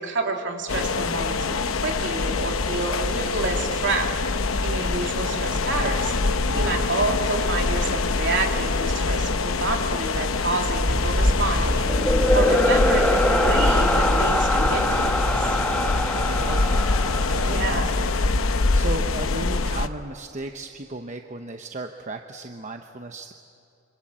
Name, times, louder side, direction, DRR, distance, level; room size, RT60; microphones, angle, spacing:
voice 1, 0.0-4.1 4.6-15.5 17.4-17.9, right 3 dB, 60° right, 2 dB, 3.0 m, -29 dB
sound 1, 0.7-19.9, left 3 dB, 75° left, 0.9 m, -24 dB
voice 2, 6.4-6.8 16.4-23.3, right 2 dB, 35° right, 5 dB, 0.9 m, -36 dB
sound 2, 10.8-18.2, left 1 dB, 5° left, 1.1 m, -23 dB
26.5 x 26.0 x 7.5 m, 2.6 s
head